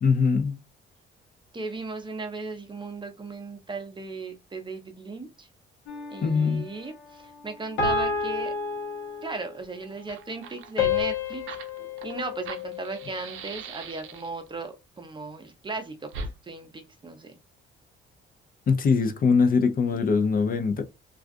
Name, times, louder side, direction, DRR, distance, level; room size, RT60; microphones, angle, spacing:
voice 1, 0.0-0.5 6.2-6.7 18.7-20.8, left 5 dB, 45° left, 0.5 m, -22 dB
voice 2, 1.5-5.5 6.1-8.5 9.2-11.4 11.8-17.3, right 3 dB, 25° right, 0.6 m, -37 dB
sound 1, 5.9-6.6 7.8-9.6 10.8-13.2, left 5 dB, 85° left, 0.9 m, -30 dB
Fire, 9.6-9.7 9.9-14.5 16.1-16.3, right 4 dB, 90° right, 0.5 m, -40 dB
2.3 x 2.3 x 2.5 m
cardioid pair, 90°, 20 cm